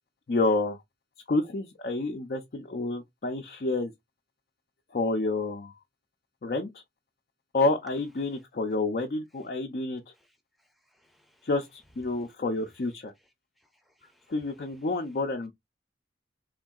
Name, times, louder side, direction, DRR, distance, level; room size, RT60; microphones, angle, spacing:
voice 1, 0.3-0.8 1.3-3.9 4.9-5.7 6.4-6.8 7.5-10.0 11.4-13.1 14.3-15.5, left 2 dB, 55° left, 0.4 m, -29 dB
voice 2, 10.1-11.5 12.1-12.3 13.6-14.3, equal, ahead, 0.6 m, -66 dB
3.7 x 2.6 x 2.3 m
head